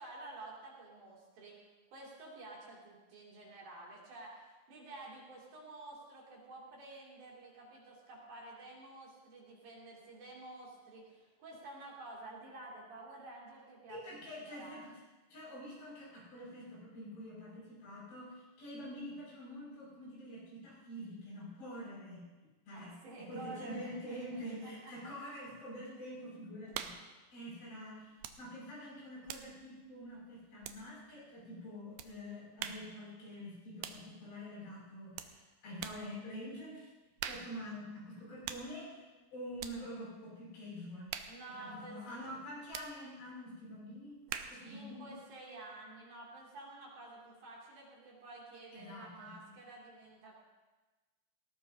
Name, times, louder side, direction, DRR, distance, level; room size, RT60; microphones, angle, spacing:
voice 1, 0.0-1.5 1.9-14.8 22.7-24.9 26.7-26.8 41.3-42.0 44.5-50.4, right 2 dB, 55° right, -4 dB, 4.3 m, -51 dB
voice 2, 13.9-14.9 15.3-22.3 22.7-23.0 23.3-36.9 37.3-39.1 39.3-41.2 41.6-44.2 44.5-45.1 48.7-49.5, equal, 65° left, -6 dB, 8.2 m, -46 dB
sound 1, 26.7-27.1 28.2-28.5 28.8-31.1 32.0-32.2 32.6-33.0 33.8-34.1 35.2-35.4 35.8-36.1 37.2-37.6 38.4-38.7 39.6-39.8 41.1-41.4 42.7-43.0 44.3-44.7, right 10 dB, 80° right, 2.4 m, -44 dB
19.5 x 18.0 x 2.8 m, 1.2 s
omnidirectional pair, 5.1 m